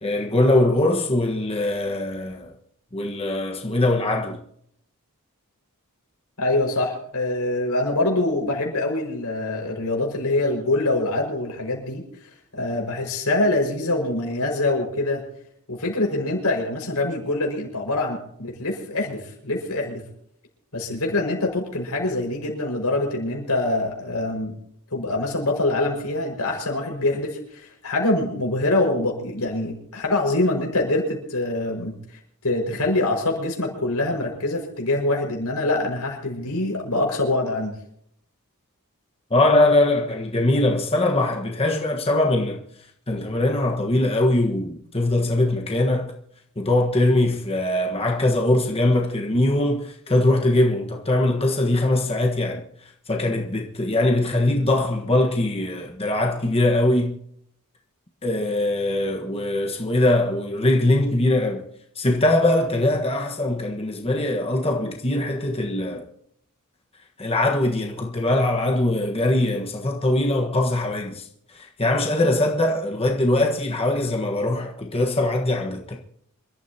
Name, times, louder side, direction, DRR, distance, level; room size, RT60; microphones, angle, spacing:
voice 1, 0.0-2.5 2.9-4.4 39.3-42.6 43.1-46.1 46.6-52.6 53.1-57.2 58.2-61.6 61.9-66.0 67.2-71.3 71.5-76.0, left 1 dB, 25° left, 1.4 m, -22 dB
voice 2, 6.4-12.0 12.5-15.2 15.7-20.0 20.7-24.5 24.9-31.9 32.4-37.7, left 2 dB, 90° left, 5.6 m, -24 dB
27.0 x 13.0 x 2.9 m
head